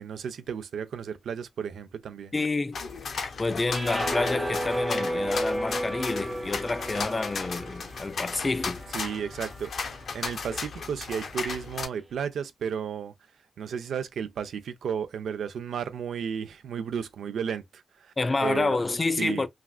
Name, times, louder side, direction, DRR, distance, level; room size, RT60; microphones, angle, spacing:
voice 1, 0.0-2.3 8.9-13.1 13.6-18.1 18.4-18.8 19.2-19.5, right 7 dB, 80° right, 0.4 m, -33 dB
voice 2, 2.3-2.8 3.4-8.8 18.2-19.5, left 3 dB, 25° left, 0.3 m, -28 dB
sound 1, 2.7-11.9, left 5 dB, 65° left, 0.6 m, -35 dB
sound 2, 3.7-10.0, equal, 15° right, 0.6 m, -33 dB
3.3 x 2.4 x 2.3 m
cardioid pair, 100°, 0 cm